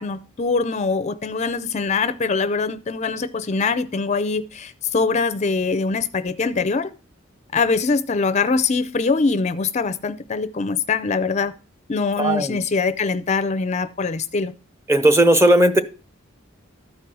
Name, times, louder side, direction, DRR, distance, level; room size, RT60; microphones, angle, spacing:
voice 1, 0.0-6.9 7.5-11.5 11.9-14.5, left 4 dB, 35° left, 12 dB, 0.5 m, -23 dB
voice 2, 12.2-12.6 14.9-15.8, right 1 dB, 15° right, 10 dB, 0.8 m, -16 dB
13.0 x 4.7 x 6.0 m, 0.37 s
head